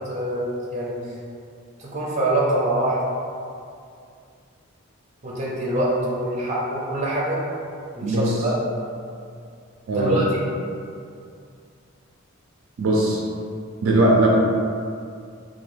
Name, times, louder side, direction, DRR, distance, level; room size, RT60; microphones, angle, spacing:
voice 1, 0.1-1.0 1.8-3.0 5.2-7.4 7.9-8.5 9.9-10.4, right 1 dB, 30° right, -6 dB, 0.6 m, -24 dB
voice 2, 8.0-8.5 9.9-10.2 12.8-13.2 13.8-14.3, right 1 dB, 70° right, -3 dB, 0.4 m, -19 dB
3.1 x 2.2 x 3.1 m, 2.3 s
head